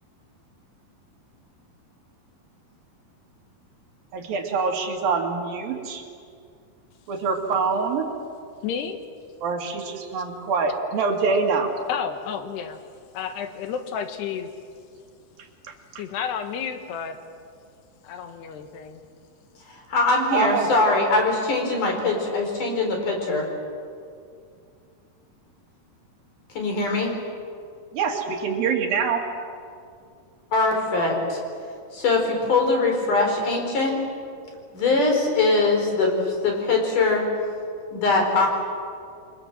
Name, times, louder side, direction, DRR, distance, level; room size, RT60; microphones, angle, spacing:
voice 1, 4.1-6.0 7.1-8.1 9.4-11.7 15.7-15.8 20.3-20.7 27.9-29.2, right 5 dB, 65° right, 3 dB, 3.7 m, -25 dB
voice 2, 8.6-9.0 11.9-12.8 13.1-14.5 16.0-17.2 18.0-19.0, left 7 dB, 85° left, 7 dB, 3.5 m, -31 dB
voice 3, 19.7-23.4 26.6-27.1 30.5-31.4 31.9-34.0 34.7-37.2 37.9-38.5, left 3 dB, 50° left, 2 dB, 5.7 m, -22 dB
29.0 x 23.0 x 7.6 m, 2.3 s
omnidirectional pair, 4.6 m